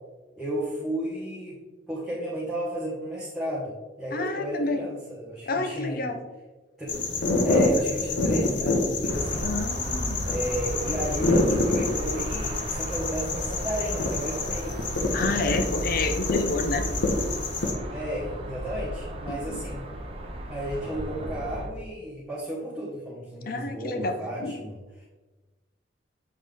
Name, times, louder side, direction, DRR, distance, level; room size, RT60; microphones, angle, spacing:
voice 1, 0.4-1.6 1.9-6.0 6.8-7.0 7.4-9.5 10.2-14.8 17.9-19.9 20.5-25.1, equal, ahead, -9 dB, 1.4 m, -33 dB
voice 2, 4.1-4.8 5.5-6.2 9.4-10.3 15.1-16.9 19.3-19.6 23.5-24.5, left 2 dB, 50° left, 7 dB, 0.6 m, -29 dB
sound 1, 6.9-17.7, left 2 dB, 75° left, 0.9 m, -27 dB
sound 2, 9.1-21.7, equal, 30° right, 0.8 m, -34 dB
7.5 x 3.9 x 3.4 m, 1.2 s
head